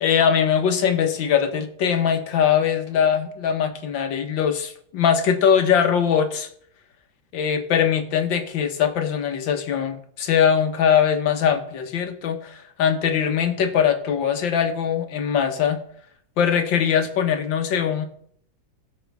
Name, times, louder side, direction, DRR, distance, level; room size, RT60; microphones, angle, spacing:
voice 1, 0.0-6.5 7.3-15.8 16.4-18.1, left 8 dB, 90° left, 7 dB, 1.8 m, -21 dB
17.0 x 6.4 x 3.5 m, 0.64 s
omnidirectional pair, 2.0 m